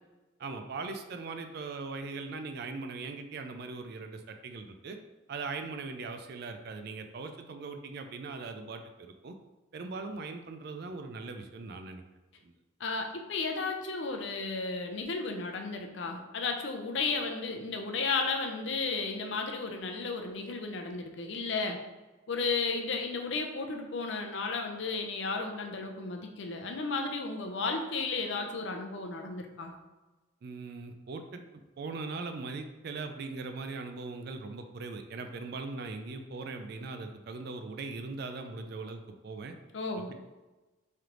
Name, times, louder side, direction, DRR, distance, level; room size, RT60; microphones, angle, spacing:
voice 1, 0.4-5.0 5.3-9.3 9.7-12.0 12.4-12.5 30.4-31.4 31.8-39.6 40.0-40.1, right 3 dB, 55° right, 6 dB, 0.3 m, -40 dB
voice 2, 12.8-21.8 22.3-29.7 39.7-40.1, left 4 dB, 65° left, 3 dB, 0.5 m, -33 dB
3.3 x 3.0 x 3.7 m, 1.1 s
head